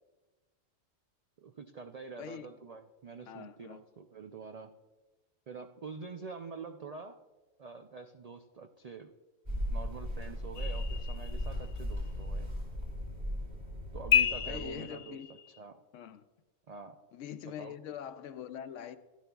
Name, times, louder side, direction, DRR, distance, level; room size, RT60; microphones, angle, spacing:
voice 1, 1.4-4.7 5.5-7.2 7.6-9.1 9.7-12.5 13.9-15.8 16.7-17.0 17.4-17.8, right 5 dB, 70° right, 0.3 m, -46 dB
voice 2, 2.2-2.5 3.3-3.8 14.5-15.3 15.9-16.2 17.1-19.0, left 9 dB, 80° left, 1.0 m, -43 dB
sound 1, 9.5-14.7, equal, 35° right, 2.6 m, -37 dB
sound 2, 10.6-11.8 14.1-15.6, left 9 dB, 55° left, 0.5 m, -31 dB
16.0 x 11.0 x 2.3 m
omnidirectional pair, 1.3 m